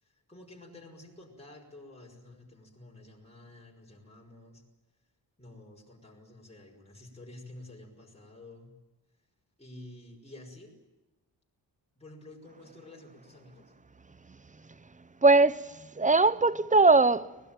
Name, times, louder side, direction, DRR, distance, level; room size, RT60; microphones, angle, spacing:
voice 1, 0.0-4.6 5.4-8.7 9.6-10.8 12.0-13.7, left 1 dB, 15° left, 5.7 m, -50 dB
voice 2, 15.2-17.4, right 3 dB, 15° right, 0.8 m, -21 dB
24.5 x 20.0 x 8.9 m
wide cardioid pair, 135°, 43 cm